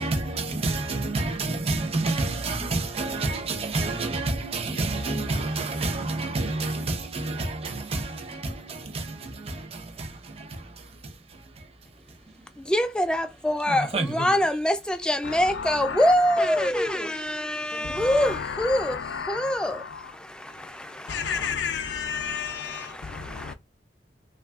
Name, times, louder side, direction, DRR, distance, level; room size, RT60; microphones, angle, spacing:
voice 1, 0.0-11.7 13.7-14.3, right 2 dB, 35° right, 0.6 m, -29 dB
voice 2, 12.6-21.5 22.2-23.5, equal, 5° left, 0.3 m, -25 dB
voice 3, 15.2-17.0 17.8-20.1 20.5-23.5, left 6 dB, 85° left, 0.5 m, -33 dB
3.1 x 2.4 x 2.3 m
head